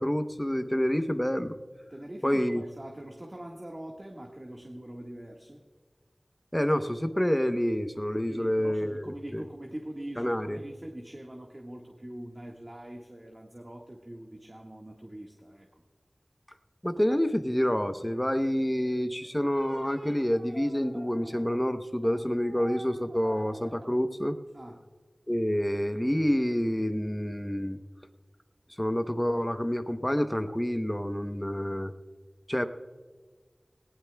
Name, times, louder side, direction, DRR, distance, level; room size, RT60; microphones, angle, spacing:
voice 1, 0.0-1.6 2.2-2.6 6.5-9.4 10.2-10.6 16.8-24.4 25.3-27.8 28.8-31.9 32.5-32.7, equal, 15° left, 8 dB, 0.9 m, -28 dB
voice 2, 1.9-5.6 8.2-15.8 24.5-24.9, right 1 dB, 35° right, 0 dB, 1.6 m, -43 dB
sound 1, 17.8-18.1 19.2-21.6 22.0-23.9, right 1 dB, 80° right, 1.7 m, -48 dB
19.5 x 19.0 x 2.3 m, 1.5 s
wide cardioid pair, 55°, 0 cm